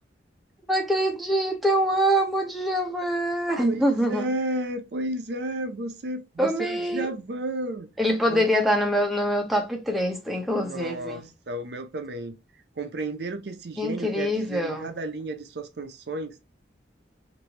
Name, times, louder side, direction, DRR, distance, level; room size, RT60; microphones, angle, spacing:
voice 1, 0.7-4.3 6.4-7.1 8.0-11.2 13.8-14.9, equal, ahead, 0.6 m, -24 dB
voice 2, 3.6-7.9 8.3-8.4 10.5-12.4 12.8-16.4, right 1 dB, 60° right, 0.5 m, -32 dB
3.1 x 2.6 x 2.8 m
head